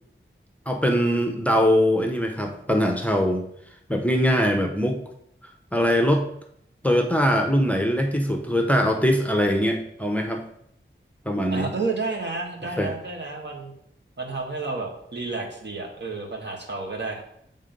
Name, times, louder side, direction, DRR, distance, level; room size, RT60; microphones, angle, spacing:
voice 1, 0.7-3.4 3.9-5.0 5.7-6.2 6.8-10.4 11.3-11.7 12.8-12.9, equal, 5° left, 3 dB, 0.8 m, -22 dB
voice 2, 11.5-13.7 14.2-17.2, right 3 dB, 60° right, 0 dB, 1.5 m, -31 dB
7.3 x 3.7 x 5.2 m, 0.71 s
wide cardioid pair, 65°, 21 cm